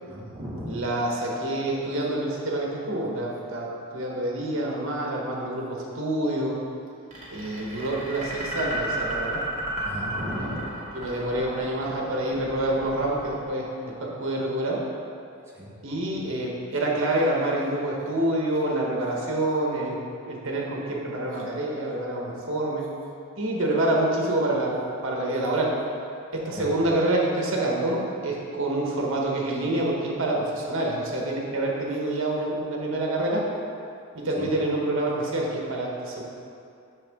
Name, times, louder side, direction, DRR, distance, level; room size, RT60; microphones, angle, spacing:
voice 1, 0.1-0.8 9.8-10.7 15.5-15.7 26.6-26.8 34.4-34.5, equal, 15° right, -7 dB, 1.3 m, -35 dB
voice 2, 0.7-6.6 7.3-9.4 10.3-10.5 10.9-14.8 15.8-20.0 20.3-22.9 23.4-24.8 25.0-25.8 26.3-33.5 34.1-36.2, right 1 dB, 60° right, -2 dB, 1.2 m, -27 dB
sound 1, 7.1-14.2, right 1 dB, 35° right, 1.5 m, -34 dB
6.8 x 5.9 x 3.5 m, 2.5 s
head